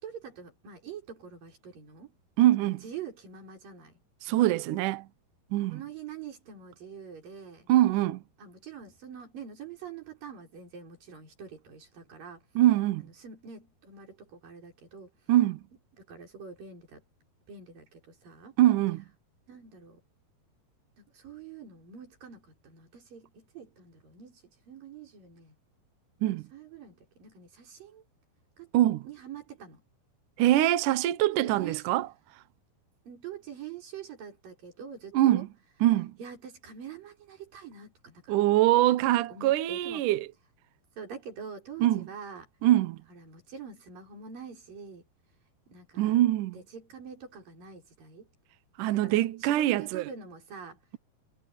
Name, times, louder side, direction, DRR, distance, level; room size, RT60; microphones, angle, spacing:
voice 1, 0.0-2.1 2.6-4.0 4.3-4.4 5.7-7.7 8.4-12.4 13.0-15.1 16.0-17.0 17.5-18.6 19.5-20.0 21.0-25.6 26.5-28.0 28.6-28.7 29.0-29.8 31.2-31.9 33.1-35.5 36.2-38.4 39.3-40.1 41.0-42.5 43.1-45.0 45.7-46.2 46.5-48.3 49.0-50.8, right 7 dB, 55° right, 6.9 m, -45 dB
voice 2, 2.4-2.8 4.2-5.1 5.5-5.8 7.7-8.2 12.6-13.1 15.3-15.6 18.6-19.1 26.2-26.5 28.7-29.0 30.4-32.1 35.1-35.5 35.8-36.1 38.3-40.3 41.8-42.0 42.6-43.0 46.0-46.5 48.8-50.1, right 14 dB, 75° right, 1.9 m, -23 dB
omnidirectional pair, 4.7 m